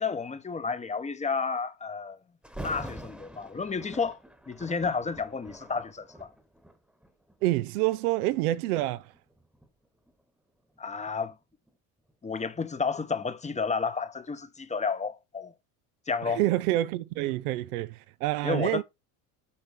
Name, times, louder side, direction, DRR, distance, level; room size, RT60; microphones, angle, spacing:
voice 1, 0.0-2.2 2.6-4.2 4.5-6.3 10.8-11.3 12.2-15.5 16.1-16.4 18.4-18.8, left 5 dB, 15° left, 0.9 m, -31 dB
Thunder, 2.4-7.4 8.1-8.3 8.9-11.8 12.1-12.2, equal, ahead, 1.3 m, -45 dB
voice 2, 7.4-9.1 16.3-18.8, right 16 dB, 85° right, 0.7 m, -27 dB
8.6 x 4.4 x 5.1 m
supercardioid pair, 95°, 44 cm